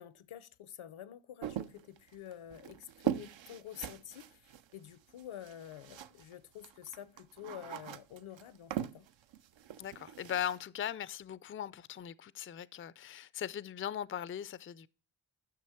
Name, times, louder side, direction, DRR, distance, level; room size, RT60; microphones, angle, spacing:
voice 1, 0.0-9.1, left 10 dB, 75° left, 0.7 m, -49 dB
sound 1, 1.4-6.3 6.6-10.6, right 10 dB, 70° right, 0.6 m, -41 dB
voice 2, 9.8-14.9, left 9 dB, 30° left, 0.4 m, -39 dB
9.4 x 6.1 x 4.4 m
cardioid pair, 45°, 49 cm